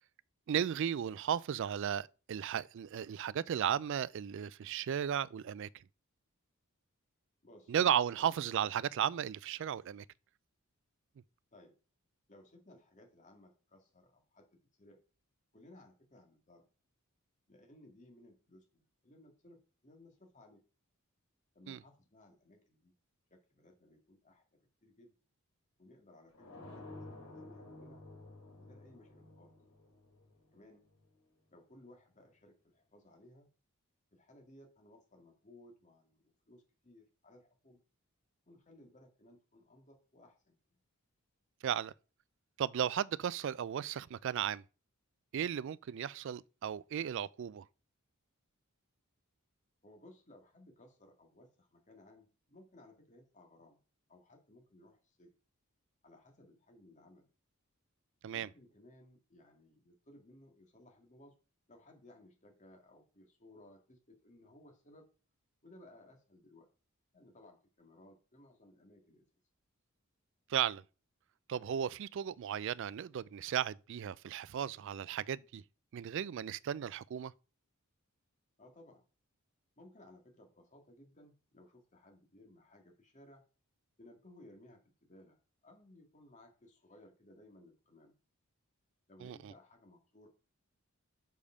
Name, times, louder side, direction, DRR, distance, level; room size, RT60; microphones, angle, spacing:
voice 1, 0.5-5.7 7.7-10.1 21.7-21.8 41.6-41.9 42.6-44.6 45.3-47.6 58.2-58.5 70.5-70.8 71.5-75.6 75.9-77.3 89.2-89.5, right 9 dB, 55° right, 0.3 m, -35 dB
voice 2, 7.4-7.7 8.2-8.3 11.5-11.8 12.3-14.5 14.8-15.0 15.5-16.7 17.5-20.6 21.5-22.9 23.3-25.1 25.8-28.1 28.6-29.5 30.5-30.8 31.5-33.5 34.1-37.8 38.5-40.6 49.8-53.8 54.1-55.3 56.0-57.3 58.3-61.4 61.7-65.1 65.6-66.7 67.1-69.2 78.6-79.0 79.8-83.4 84.0-88.2 89.1-90.3, left 1 dB, 35° left, 2.0 m, -60 dB
sound 1, 26.3-31.1, left 2 dB, 80° left, 3.6 m, -52 dB
6.6 x 5.3 x 5.0 m
head